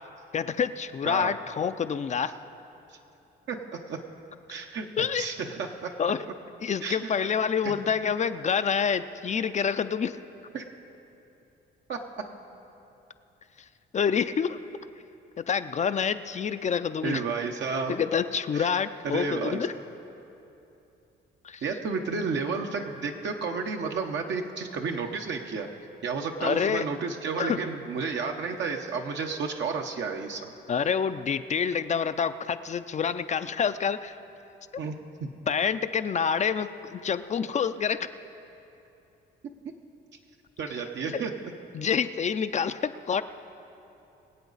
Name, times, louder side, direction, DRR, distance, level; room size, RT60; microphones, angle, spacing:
voice 1, 0.3-2.3 5.0-5.3 6.0-6.2 6.6-10.2 13.9-14.6 15.4-17.2 17.9-19.7 21.4-21.6 22.1-22.3 26.4-26.8 27.4-27.6 30.7-34.1 35.5-38.1 41.1-41.2 41.7-43.2, left 7 dB, 35° left, 11 dB, 0.4 m, -27 dB
voice 2, 4.5-5.9 6.8-7.2 7.6-7.7 10.5-10.7 11.9-12.0 17.0-18.0 18.5-18.7 19.0-19.7 21.6-25.7 26.0-30.5 34.8-35.0 35.2-35.3 40.6-41.5, right 5 dB, 65° right, 2 dB, 0.9 m, -31 dB
23.0 x 8.3 x 4.0 m, 2.9 s
cardioid pair, 90°, 20 cm